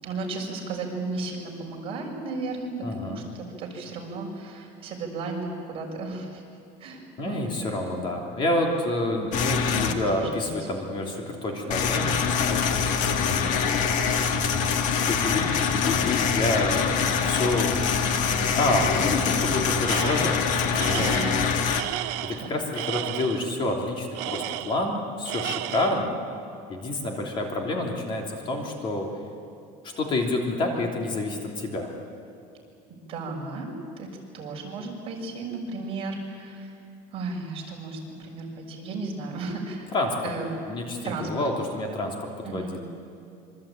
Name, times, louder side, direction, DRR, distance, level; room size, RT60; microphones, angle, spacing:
voice 1, 0.0-6.4 6.8-7.6 9.8-10.5 21.0-21.2 22.4-22.5 32.9-33.7 34.0-34.1 34.3-36.7 37.1-39.9 40.2-40.5 41.0-41.3 42.4-42.7, right 3 dB, 35° right, 0 dB, 5.6 m, -34 dB
voice 2, 2.8-3.2 7.2-13.9 15.0-17.7 18.3-21.2 22.2-26.1 26.7-29.1 29.8-31.9 39.9-40.2 40.7-42.8, left 2 dB, 30° left, 1 dB, 3.1 m, -28 dB
sound 1, 9.3-9.9 11.7-21.8, left 6 dB, 50° left, 1.8 m, -24 dB
Tools, 19.8-20.4 20.7-23.5 24.1-25.0 25.3-26.1, right 16 dB, 85° right, 0.9 m, -33 dB
26.5 x 24.5 x 8.9 m, 2.4 s
cardioid pair, 175°, 17 cm